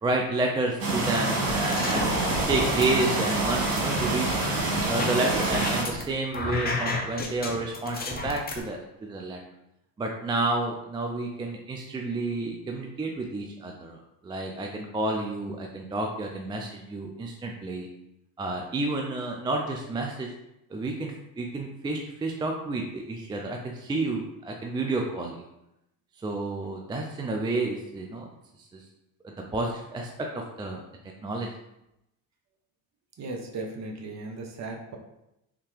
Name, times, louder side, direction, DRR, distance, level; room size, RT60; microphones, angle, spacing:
voice 1, 0.0-2.2 2.5-4.3 4.9-9.4 10.0-17.9 18.4-20.3 20.7-25.4 26.2-28.3 28.7-28.8 29.2-30.3 30.6-30.8 31.2-31.5, right 2 dB, 10° right, 1 dB, 0.3 m, -30 dB
sound 1, 0.8-5.8, right 2 dB, 80° right, 1.4 m, -27 dB
sound 2, 1.5-2.9 3.3-6.0 6.3-8.6, left 2 dB, 20° left, 0.7 m, -32 dB
voice 2, 33.2-35.0, right 3 dB, 35° right, 2 dB, 0.8 m, -36 dB
3.5 x 2.8 x 3.2 m, 0.86 s
hypercardioid pair, 65°, 46 cm